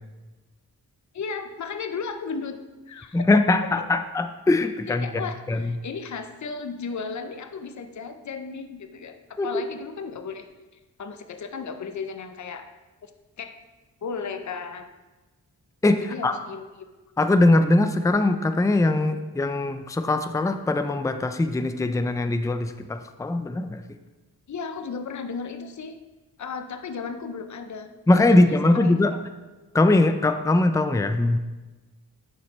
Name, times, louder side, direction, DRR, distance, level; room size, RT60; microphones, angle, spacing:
voice 1, 1.1-2.6 2.9-4.0 4.8-10.5 11.0-12.7 13.0-13.1 13.4-13.6 14.0-14.9 16.1-16.9 24.5-26.0 26.4-27.9 28.3-29.2, left 5 dB, 50° left, 8 dB, 0.6 m, -35 dB
voice 2, 3.1-5.1 5.5-5.7 9.4-9.5 15.8-16.4 17.2-23.8 28.1-29.1 29.7-31.4, left 2 dB, 10° left, 8 dB, 0.4 m, -21 dB
11.0 x 4.3 x 3.2 m, 1.2 s
cardioid pair, 55°, 39 cm